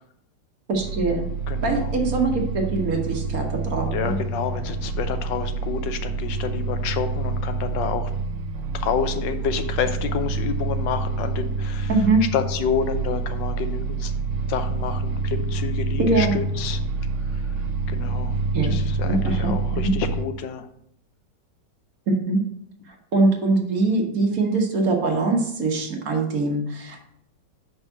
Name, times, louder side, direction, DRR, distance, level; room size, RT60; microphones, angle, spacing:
voice 1, 0.7-1.2 1.6-4.2 11.9-12.2 16.0-16.4 18.5-18.7 19.0-19.9 22.1-22.4 22.9-27.0, right 3 dB, 55° right, 2 dB, 1.5 m, -23 dB
sound 1, 0.7-20.2, right 3 dB, 85° right, 1.3 m, -27 dB
voice 2, 1.5-1.9 3.9-8.1 8.7-11.9 12.3-14.1 14.5-16.8 17.3-17.5 17.9-20.7, left 7 dB, 80° left, 9 dB, 1.3 m, -29 dB
5.6 x 4.5 x 5.9 m, 0.71 s
omnidirectional pair, 1.9 m